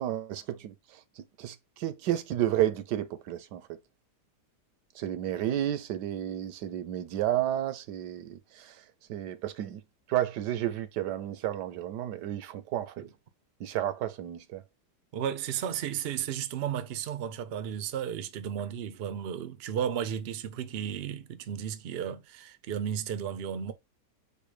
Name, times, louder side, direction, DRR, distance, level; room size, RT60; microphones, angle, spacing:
voice 1, 0.0-3.8 4.9-9.8 10.1-13.0 13.6-14.6, right 12 dB, 90° right, 1.3 m, -32 dB
voice 2, 15.1-23.7, right 9 dB, 70° right, 0.5 m, -34 dB
4.7 x 2.2 x 4.8 m
omnidirectional pair, 1.8 m